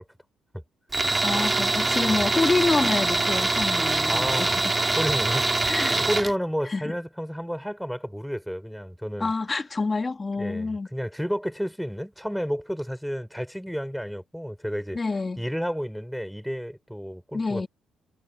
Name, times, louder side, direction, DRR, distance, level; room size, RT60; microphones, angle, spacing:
Tools, 0.9-6.3, right 3 dB, 20° right, 2.3 m, -24 dB
voice 1, 1.2-4.5 5.7-6.0 6.7-6.9 9.2-10.9 14.9-15.4 17.3-17.7, left 3 dB, 25° left, 2.7 m, -27 dB
voice 2, 4.1-4.6 5.0-9.3 10.4-15.0 15.4-17.7, equal, ahead, 4.5 m, -31 dB
cardioid pair, 90°, 0 cm